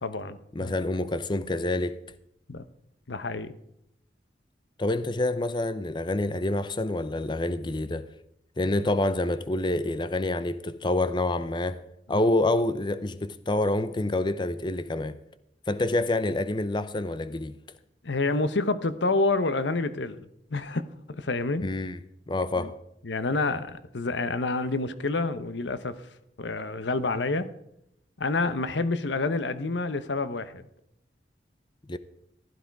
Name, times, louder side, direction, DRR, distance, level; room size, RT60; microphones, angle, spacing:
voice 1, 0.0-0.7 2.5-2.7 3.1-3.5 12.1-12.3 18.0-21.7 22.6-22.7 23.0-26.0 26.4-27.5 28.2-30.6, left 3 dB, 85° left, 1.0 m, -28 dB
voice 2, 0.5-2.0 4.8-8.1 8.6-11.8 12.1-15.2 15.7-17.6 21.6-22.0 22.3-22.8 31.9-32.0, left 2 dB, 25° left, 0.6 m, -27 dB
15.5 x 12.0 x 4.7 m
head